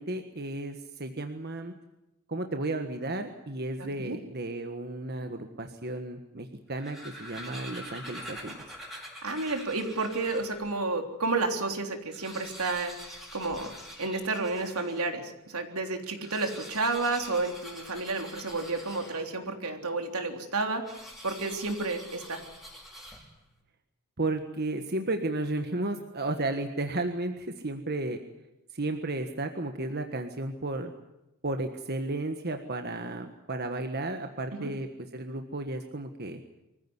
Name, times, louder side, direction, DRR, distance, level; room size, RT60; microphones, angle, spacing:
voice 1, 0.0-1.7 2.3-8.6 24.2-28.2 28.7-30.9 31.4-34.9 35.1-36.4, right 2 dB, 45° right, 6 dB, 1.5 m, -33 dB
sound 1, 6.6-10.7 11.3-11.4 11.6-11.7 12.0-15.1 16.1-19.5 20.8-23.5, equal, ahead, 4.9 m, -45 dB
voice 2, 9.2-20.8 21.2-22.4 34.5-34.7, right 3 dB, 75° right, 4 dB, 3.5 m, -31 dB
24.5 x 15.5 x 9.8 m, 0.94 s
head